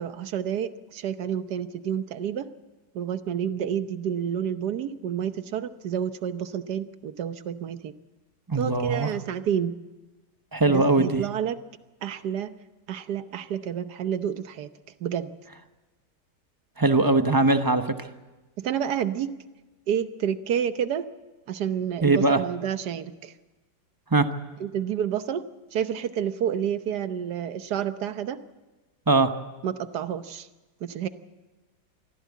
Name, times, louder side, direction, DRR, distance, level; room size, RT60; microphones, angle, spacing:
voice 1, 0.0-2.5 2.9-7.9 8.6-9.8 10.7-11.6 12.0-12.5 12.9-14.7 15.0-15.3 18.6-19.4 19.9-21.1 21.5-23.3 24.6-25.4 25.7-28.4 29.6-30.5 30.8-31.1, right 9 dB, 65° right, 11 dB, 1.4 m, -29 dB
voice 2, 8.5-9.1 10.5-11.3 16.8-18.1 22.0-22.4 24.1-24.3 29.1-29.3, right 3 dB, 20° right, 8 dB, 0.6 m, -21 dB
24.0 x 15.0 x 8.3 m, 1.2 s
omnidirectional pair, 1.9 m